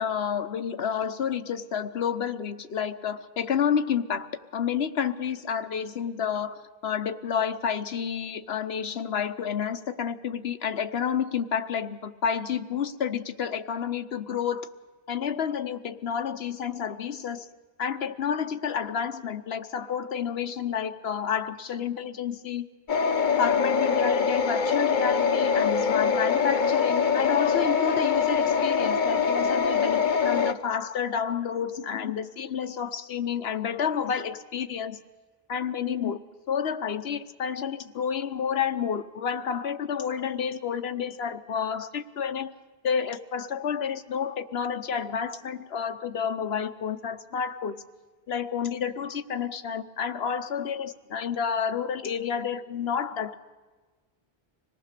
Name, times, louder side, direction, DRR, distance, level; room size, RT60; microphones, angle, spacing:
voice 1, 0.0-4.3 4.5-14.7 15.1-17.5 17.8-22.6 23.4-35.0 35.5-36.2 36.5-42.5 42.8-47.8 48.3-53.4, left 7 dB, 80° left, 11 dB, 1.2 m, -30 dB
sound 1, 22.9-30.5, left 6 dB, 55° left, 1.0 m, -24 dB
26.0 x 18.5 x 6.7 m, 1.3 s
omnidirectional pair, 1.0 m